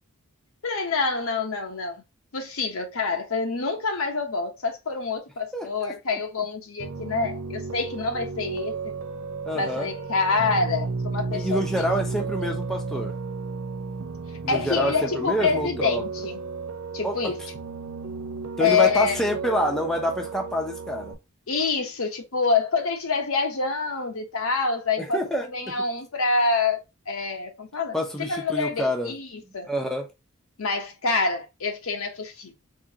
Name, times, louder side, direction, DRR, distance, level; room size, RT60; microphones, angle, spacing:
voice 1, 0.6-2.0 2.3-8.7 9.5-11.9 14.5-16.4 16.9-17.4 18.6-19.2 21.5-25.2 25.5-28.0 28.3-29.7 30.6-32.5, left 4 dB, 75° left, 0.9 m, -26 dB
voice 2, 5.5-6.2 9.4-9.9 11.3-13.1 14.4-16.0 17.0-17.3 18.6-21.1 25.0-25.8 27.9-29.1 29.7-30.1, equal, ahead, 0.6 m, -27 dB
Piano, 6.8-21.1, right 4 dB, 90° right, 0.6 m, -33 dB
3.7 x 2.8 x 2.8 m
head